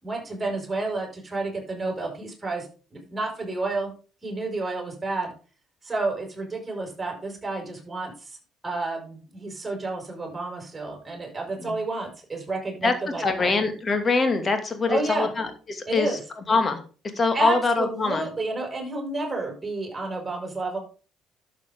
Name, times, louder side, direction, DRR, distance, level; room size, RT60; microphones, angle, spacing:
voice 1, 0.0-3.9 4.2-5.3 5.8-8.4 8.6-13.5 14.9-15.3 15.9-16.2 17.3-20.8, right 3 dB, 20° right, 1 dB, 5.8 m, -30 dB
voice 2, 12.8-16.2 16.5-16.8 17.1-18.3, left 4 dB, 35° left, 6 dB, 2.4 m, -24 dB
11.5 x 7.4 x 3.8 m, 0.36 s
hypercardioid pair, 50°, 0 cm